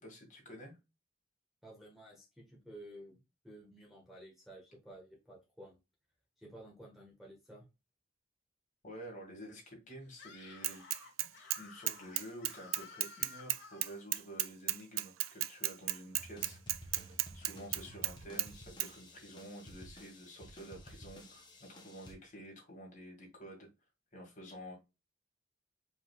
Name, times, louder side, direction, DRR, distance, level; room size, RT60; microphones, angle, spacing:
voice 1, 0.0-0.8 8.8-10.8 11.3-23.7 24.1-24.7, equal, 40° left, 0 dB, 2.1 m, -50 dB
voice 2, 1.6-3.2 3.4-5.8 6.4-7.6, right 1 dB, ahead, -2 dB, 1.5 m, -53 dB
Screaming, 10.1-14.1, left 5 dB, 65° left, 1.2 m, -54 dB
Bicycle / Mechanisms, 10.6-11.6 11.9-18.1 18.4-18.5 18.8-18.9, right 15 dB, 85° right, 0.4 m, -34 dB
sound 1, 16.2-22.1, equal, 25° left, 1.0 m, -53 dB
4.8 x 4.0 x 2.4 m, 0.25 s
head